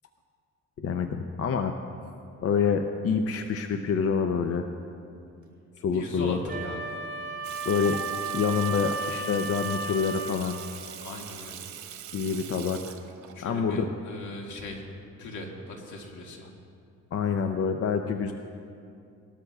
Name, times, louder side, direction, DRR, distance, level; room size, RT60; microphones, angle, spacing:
voice 1, 0.8-1.8 2.4-4.6 5.8-6.4 7.7-8.0 8.3-10.6 12.1-13.0 13.4-13.9 17.1-18.3, left 6 dB, 50° left, 6 dB, 0.7 m, -27 dB
voice 2, 5.9-6.8 11.0-11.7 13.3-14.8 15.2-16.5, left 2 dB, 80° left, 0 dB, 2.0 m, -39 dB
Wind instrument woodwind instrument, 6.5-10.5, right 4 dB, 40° right, 3.4 m, -34 dB
Water tap faucet / Sink (filling or washing), 7.4-13.3, right 9 dB, 70° right, 1.1 m, -42 dB
19.0 x 13.0 x 2.4 m, 2.5 s
cardioid pair, 90°, 30 cm